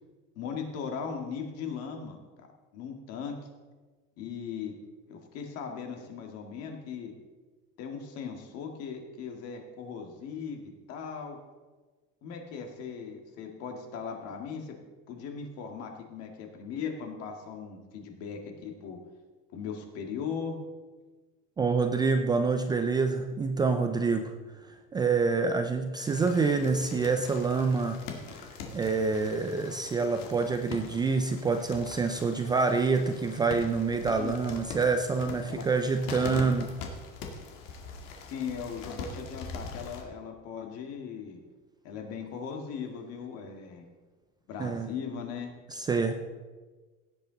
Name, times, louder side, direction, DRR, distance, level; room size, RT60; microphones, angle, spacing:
voice 1, 0.4-2.5 2.7-3.4 4.2-4.8 5.1-7.1 7.8-11.4 12.2-14.8 15.1-19.0 19.5-20.6 34.2-34.3 35.5-35.6 38.2-41.4 41.8-43.9 44.5-45.5, left 6 dB, 55° left, 3 dB, 2.0 m, -38 dB
voice 2, 21.6-24.3 24.6-28.0 28.7-36.7 44.6-44.9 45.7-46.1, right 4 dB, 15° right, 6 dB, 0.4 m, -27 dB
sound 1, 26.0-40.0, left 4 dB, 85° left, 2.1 m, -43 dB
16.5 x 8.4 x 3.9 m, 1.3 s
cardioid pair, 170°, 30 cm